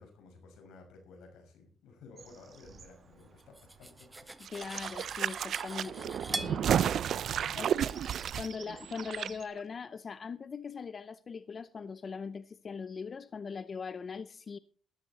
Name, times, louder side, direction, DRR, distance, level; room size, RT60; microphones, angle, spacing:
voice 1, 0.0-4.1 7.3-7.8, left 3 dB, 85° left, 5.7 m, -55 dB
Bird vocalization bird call bird song, 2.2-9.5, right 6 dB, 45° right, 2.0 m, -56 dB
Cutlery silverware, 3.4-6.6, right 2 dB, 15° right, 1.3 m, -42 dB
sound 1, 4.4-9.3 9.6-9.7, right 9 dB, 65° right, 0.5 m, -32 dB
voice 2, 4.5-6.7 7.6-7.7 8.4-14.6, left 5 dB, 40° left, 0.6 m, -41 dB
14.0 x 12.5 x 4.1 m
cardioid pair, 90°, 0 cm